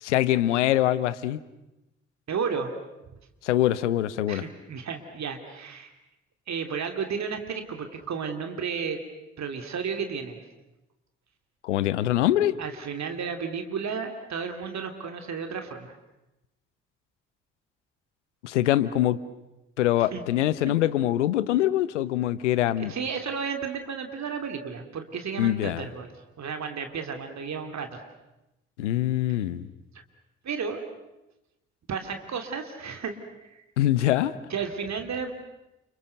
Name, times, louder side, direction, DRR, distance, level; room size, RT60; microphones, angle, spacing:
voice 1, 0.0-1.4 3.4-4.4 11.6-12.5 18.4-19.2 19.8-22.9 25.4-25.9 28.8-29.7 33.8-34.3, left 13 dB, 85° left, 16 dB, 0.9 m, -24 dB
voice 2, 2.3-2.7 4.3-5.9 6.5-9.0 9.4-10.4 12.6-16.0 20.1-20.2 22.8-26.1 26.4-28.0 30.4-30.8 31.9-33.6 34.5-35.3, right 6 dB, 50° right, 5 dB, 3.0 m, -33 dB
29.5 x 26.5 x 6.7 m, 0.97 s
figure-of-eight pair, 40°, 35 cm